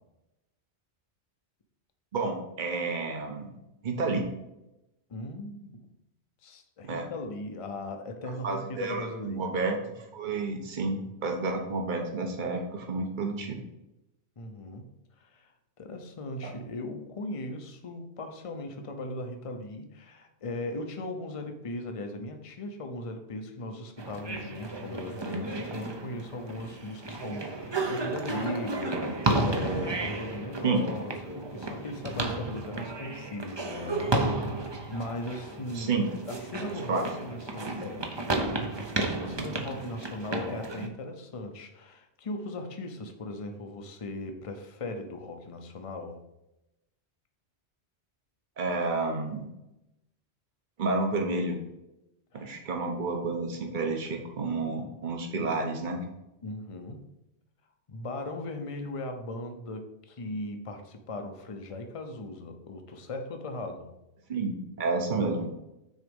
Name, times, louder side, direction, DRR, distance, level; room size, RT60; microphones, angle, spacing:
voice 1, 2.1-3.5 3.8-4.3 6.8-7.1 8.4-9.8 10.1-13.6 16.4-16.5 30.6-30.8 35.7-36.0 36.9-37.0 48.6-49.4 50.8-51.6 52.3-56.0 64.3-65.5, right 3 dB, 50° right, 3 dB, 1.2 m, -30 dB
voice 2, 5.1-5.8 6.4-9.5 14.4-15.5 15.8-35.9 36.3-46.2 52.3-52.6 56.4-57.1 57.9-63.9, left 2 dB, 35° left, 5 dB, 0.7 m, -38 dB
sound 1, 24.0-40.9, right 2 dB, 30° right, 0.7 m, -33 dB
6.4 x 4.1 x 5.3 m, 0.92 s
omnidirectional pair, 1.1 m